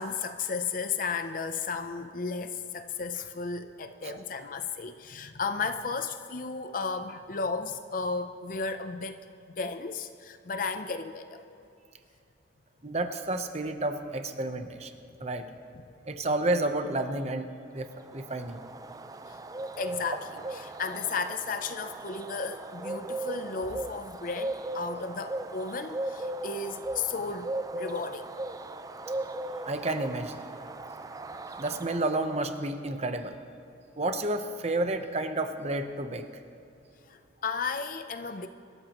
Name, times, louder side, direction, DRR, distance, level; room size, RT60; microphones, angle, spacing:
voice 1, 0.0-9.2 9.6-11.6 19.3-19.4 19.8-28.3 37.1-38.5, left 4 dB, 45° left, 8 dB, 0.5 m, -34 dB
voice 2, 12.8-14.9 15.2-15.5 16.1-17.5 17.7-18.6 29.7-30.4 31.6-33.4 34.0-36.3, right 2 dB, 35° right, 8 dB, 0.8 m, -30 dB
Bird, 17.9-32.6, right 2 dB, 20° right, 0.4 m, -38 dB
25.0 x 13.5 x 3.0 m, 2.7 s
head